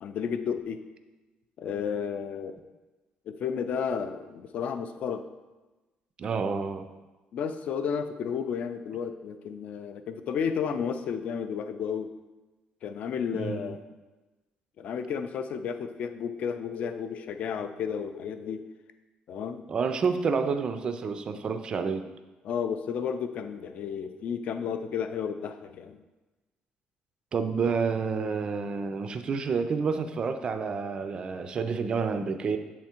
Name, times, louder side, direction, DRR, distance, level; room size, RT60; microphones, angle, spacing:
voice 1, 0.0-0.8 1.6-2.6 3.3-5.2 7.3-12.1 12.8-13.8 14.8-18.6 19.3-19.6 22.4-26.0, left 7 dB, 45° left, 9 dB, 0.4 m, -32 dB
voice 2, 6.2-6.9 13.3-13.8 19.7-22.0 27.3-32.6, right 5 dB, 30° right, 9 dB, 0.3 m, -29 dB
7.2 x 3.5 x 4.3 m, 1.2 s
cardioid pair, 180°, 3 cm